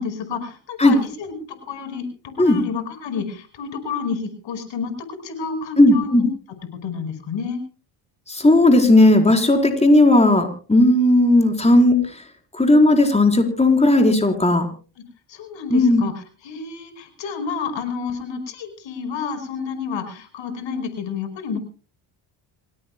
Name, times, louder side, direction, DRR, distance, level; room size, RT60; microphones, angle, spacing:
voice 1, 0.0-1.3 1.7-2.1 2.4-6.3 6.7-7.6 15.3-21.6, left 5 dB, 70° left, 9 dB, 5.3 m, -30 dB
voice 2, 5.8-6.2 8.3-12.0 12.5-14.7 15.7-16.0, left 1 dB, 15° left, 4 dB, 4.5 m, -15 dB
27.5 x 17.0 x 2.3 m, 0.37 s
supercardioid pair, 75°, 46 cm